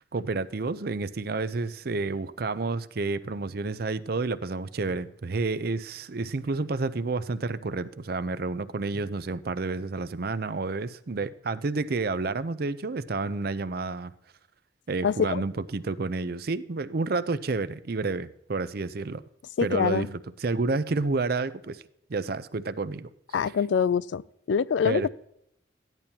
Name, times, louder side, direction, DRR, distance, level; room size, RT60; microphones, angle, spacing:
voice 1, 0.1-14.1 14.9-19.2 19.6-21.8 22.1-23.1 24.8-25.1, right 3 dB, 50° right, 0.5 m, -30 dB
voice 2, 15.0-15.4 19.6-20.1 23.3-24.2 24.5-25.1, left 6 dB, 70° left, 0.3 m, -24 dB
15.0 x 10.5 x 2.8 m
head